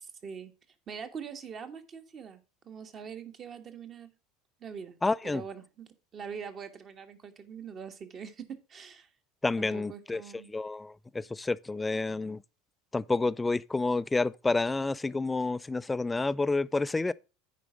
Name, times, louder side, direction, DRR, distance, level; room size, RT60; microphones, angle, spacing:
voice 1, 0.9-4.1 4.6-4.9 5.2-9.1 9.6-10.5, right 6 dB, 40° right, 1.4 m, -43 dB
voice 2, 5.0-5.4 9.4-10.2 10.5-12.4 12.9-17.1, left 3 dB, 15° left, 0.4 m, -29 dB
9.2 x 4.9 x 4.9 m
hypercardioid pair, 75°, 0 cm